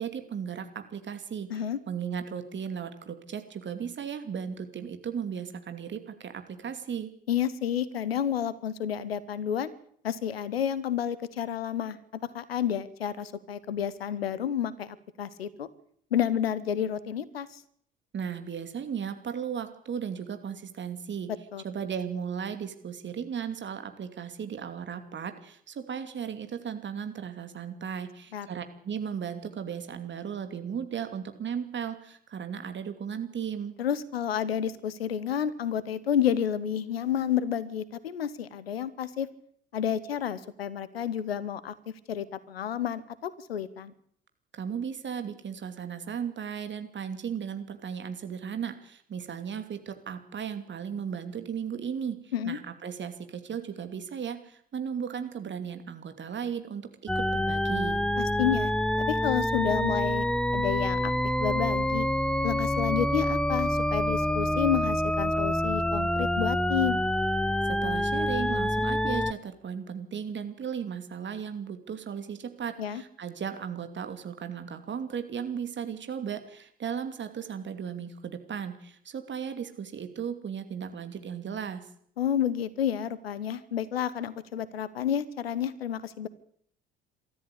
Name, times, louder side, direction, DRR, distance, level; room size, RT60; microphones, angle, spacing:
voice 1, 0.0-7.1 18.1-21.3 21.6-33.8 44.5-56.9 57.1-58.0 67.6-81.8, right 7 dB, 40° right, 8 dB, 2.7 m, -36 dB
voice 2, 7.3-9.7 10.0-12.0 12.3-15.7 16.1-17.6 21.5-21.6 28.3-28.5 33.8-39.3 39.7-43.9 52.3-52.6 58.2-58.7 59.0-60.2 60.5-62.1 62.4-67.0 72.8-73.0 82.2-86.3, left 9 dB, 80° left, 18 dB, 1.0 m, -30 dB
sound 1, 57.1-69.3, left 1 dB, 5° left, 0.9 m, -27 dB
23.0 x 13.5 x 8.5 m, 0.65 s
figure-of-eight pair, 50°, 30 cm